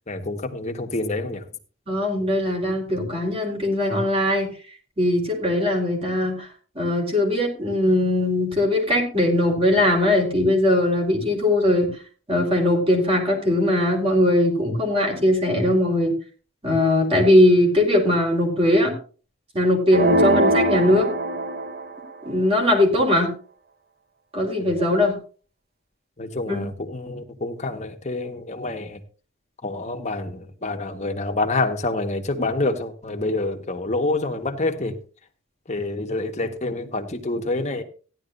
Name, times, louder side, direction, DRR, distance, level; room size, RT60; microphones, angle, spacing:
voice 1, 0.1-1.4 24.6-24.7 26.2-29.0 29.6-35.0 35.7-37.8, left 2 dB, 35° left, 4 dB, 1.5 m, -27 dB
voice 2, 1.9-4.5 5.0-6.5 6.7-11.9 12.3-16.1 16.6-18.9 19.5-21.1 22.2-23.3 24.3-25.2 26.5-26.7, left 1 dB, 30° right, 1 dB, 4.4 m, -20 dB
sound 1, 19.9-22.0, right 1 dB, 45° right, 0.7 m, -21 dB
15.5 x 11.5 x 2.7 m, 0.37 s
head